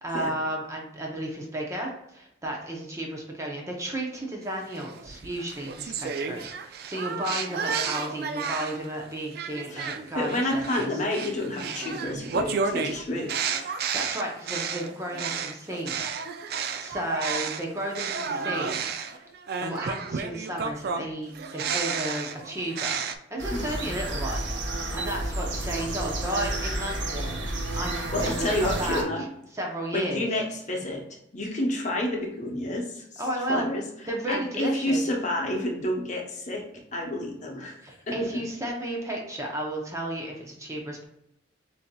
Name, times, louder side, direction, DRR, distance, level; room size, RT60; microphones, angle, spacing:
voice 1, 0.0-10.9 13.9-16.0 16.8-19.2 19.6-23.0 23.3-24.5 24.7-27.9 28.2-29.1 29.5-30.3 33.2-33.7 34.1-35.0 37.8-41.1, right 1 dB, 15° right, 0 dB, 0.6 m, -33 dB
sound 1, 4.7-8.9 9.3-17.6 17.9-23.1, right 5 dB, 55° right, 0.3 m, -32 dB
voice 2, 9.7-13.6 23.5-24.0 27.9-29.3 29.9-31.0 31.3-33.2 33.5-33.8 34.3-38.4, left 1 dB, 40° left, 0 dB, 0.8 m, -30 dB
sound 2, 23.4-29.0, right 1 dB, 70° right, 0.8 m, -31 dB
6.7 x 2.7 x 2.2 m, 0.81 s
head